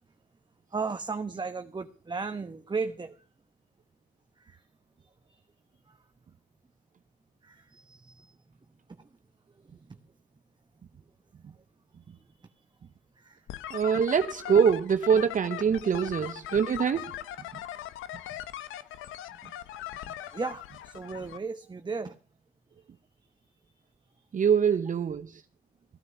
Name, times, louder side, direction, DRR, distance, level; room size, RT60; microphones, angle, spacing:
voice 1, 0.7-3.2 4.4-4.6 5.9-6.0 7.4-8.4 9.0-9.1 9.7-10.0 13.2-13.4 20.2-22.1, right 4 dB, 20° right, 1.1 m, -35 dB
sound 1, 13.5-21.4, left 12 dB, 90° left, 1.0 m, -40 dB
voice 2, 13.7-17.2 24.3-25.4, right 7 dB, 40° right, 0.8 m, -24 dB
16.0 x 9.5 x 6.8 m
cardioid pair, 90°, 20 cm